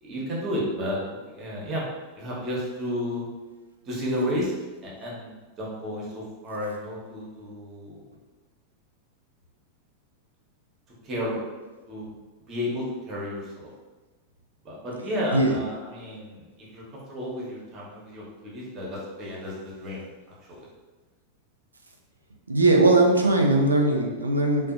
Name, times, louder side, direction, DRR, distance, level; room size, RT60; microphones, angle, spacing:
voice 1, 0.0-1.9 2.1-3.3 3.8-4.5 4.8-8.0 11.0-11.4 11.9-12.1 12.5-13.7 14.6-20.0 20.5-20.6, equal, 30° right, -5 dB, 0.8 m, -32 dB
voice 2, 22.5-24.7, right 2 dB, 80° right, 1 dB, 0.3 m, -20 dB
2.6 x 2.1 x 2.4 m, 1.2 s
figure-of-eight pair, 90°, 0 cm